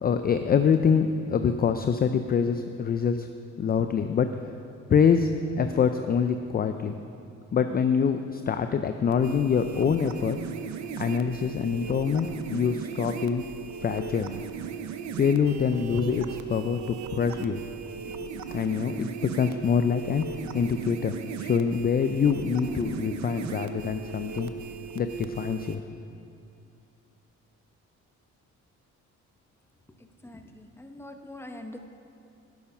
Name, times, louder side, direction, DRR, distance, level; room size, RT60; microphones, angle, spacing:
voice 1, 0.0-3.3 3.6-4.5 4.9-7.0 7.5-10.4 11.0-13.4 13.8-14.3 15.2-17.6 18.5-20.3 20.5-24.5 25.0-25.8, left 6 dB, 30° left, 8 dB, 0.4 m, -25 dB
sound 1, 9.1-25.8, right 6 dB, 65° right, 0.7 m, -37 dB
voice 2, 30.0-31.8, left 1 dB, 10° left, 5 dB, 0.9 m, -43 dB
10.5 x 7.0 x 5.5 m, 2.5 s
cardioid pair, 90°, 30 cm